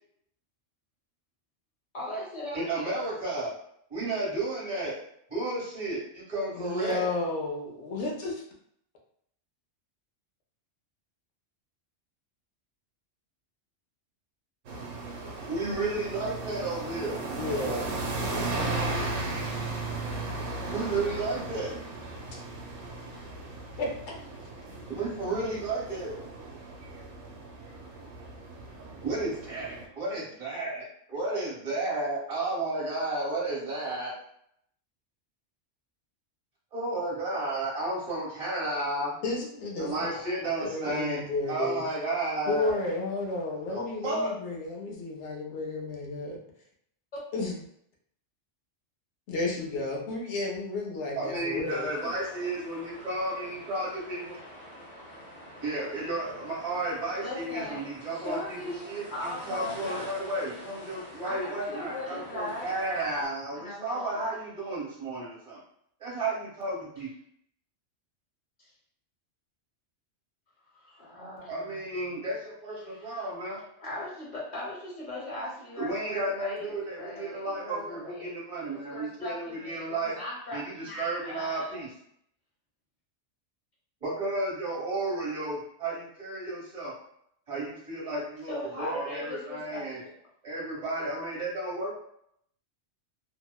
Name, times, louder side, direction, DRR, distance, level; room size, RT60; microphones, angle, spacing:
voice 1, 1.9-2.6 57.2-60.3 61.2-62.8 63.5-64.3 70.7-71.8 72.8-73.3 73.8-78.3 78.7-81.8 88.5-90.1, left 1 dB, 40° left, -6 dB, 1.0 m, -39 dB
voice 2, 2.5-3.5 3.9-5.0 5.3-7.0 15.5-17.2 20.7-21.7 24.9-26.2 29.0-34.2 36.7-39.2 39.8-42.8 43.7-44.3 51.2-54.4 55.6-65.6 66.0-67.1 71.5-73.6 75.8-80.2 80.5-81.9 84.0-87.0 87.5-90.0 90.4-91.9, right 2 dB, 35° right, -6 dB, 1.0 m, -32 dB
voice 3, 6.5-8.4 17.1-18.6 22.3-22.4 23.8-23.9 25.3-25.5 39.2-40.3 40.6-41.8 42.5-46.4 47.3-47.6 49.3-51.9, left 2 dB, 75° left, -1 dB, 0.9 m, -32 dB
sound 1, 14.7-29.9, right 2 dB, 80° right, 0.9 m, -36 dB
sound 2, 51.6-63.3, equal, 5° left, 1.0 m, -46 dB
2.7 x 2.0 x 2.2 m, 0.70 s
omnidirectional pair, 1.2 m